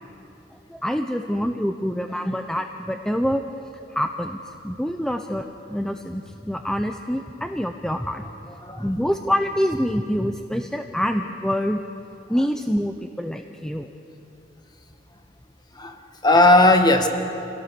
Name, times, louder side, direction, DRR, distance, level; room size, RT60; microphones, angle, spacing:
voice 1, 0.7-3.4 3.9-8.2 8.8-11.8 12.3-13.9, equal, 5° left, 5 dB, 0.6 m, -26 dB
voice 2, 15.7-17.1, left 2 dB, 25° left, 5 dB, 1.5 m, -17 dB
27.0 x 17.5 x 6.9 m, 2.9 s
head